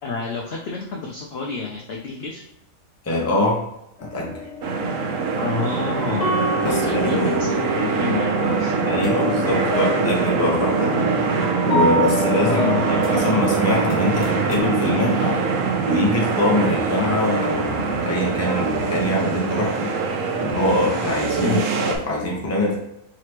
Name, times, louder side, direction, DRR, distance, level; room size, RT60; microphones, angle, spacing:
voice 1, 0.0-2.4 5.4-6.3 6.6-8.7 12.4-12.8 21.4-21.6, left 4 dB, 75° left, 0 dB, 0.5 m, -28 dB
voice 2, 3.0-3.6 4.0-4.4 6.6-7.4 8.8-11.0 11.6-15.4 15.8-19.9 20.4-22.8, left 1 dB, 15° left, -2 dB, 0.5 m, -23 dB
sound 1, 4.0-14.6, equal, 60° left, 1.1 m, -28 dB
sound 2, 4.6-22.0, right 5 dB, 65° right, 0.9 m, -23 dB
3.7 x 3.2 x 2.9 m, 0.82 s
omnidirectional pair, 1.6 m